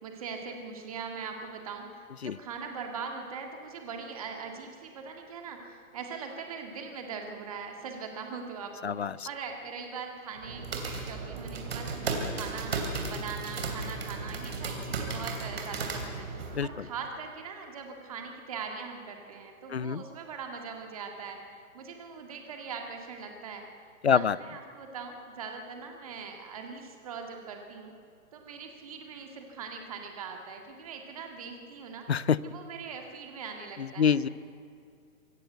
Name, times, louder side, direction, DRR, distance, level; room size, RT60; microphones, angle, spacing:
voice 1, 0.0-23.7 24.1-27.9 28.3-32.1 32.4-34.3, right 5 dB, 25° right, 3 dB, 1.9 m, -41 dB
voice 2, 8.8-9.3 16.5-16.9 19.7-20.0 24.0-24.4 32.1-32.4 33.8-34.3, left 7 dB, 50° left, 20 dB, 0.5 m, -26 dB
sound 1, 10.4-16.6, right 4 dB, 45° right, 3.0 m, -35 dB
24.0 x 14.5 x 7.9 m, 2.4 s
hypercardioid pair, 180°, 44 cm